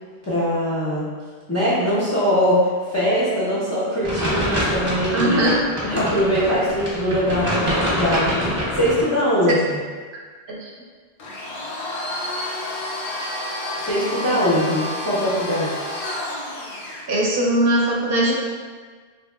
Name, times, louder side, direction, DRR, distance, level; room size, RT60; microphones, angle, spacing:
voice 1, 0.2-1.1 1.5-5.4 5.8-9.6 13.8-15.8, equal, 25° left, -10 dB, 0.3 m, -22 dB
sound 1, 4.0-9.0, equal, 30° right, 0.8 m, -25 dB
voice 2, 5.1-5.6 10.5-10.7 17.1-18.3, right 1 dB, 60° right, -3 dB, 0.7 m, -20 dB
Domestic sounds home sounds, 11.2-17.1, left 1 dB, 80° left, 0.8 m, -30 dB
2.8 x 2.7 x 2.3 m, 1.5 s
omnidirectional pair, 1.1 m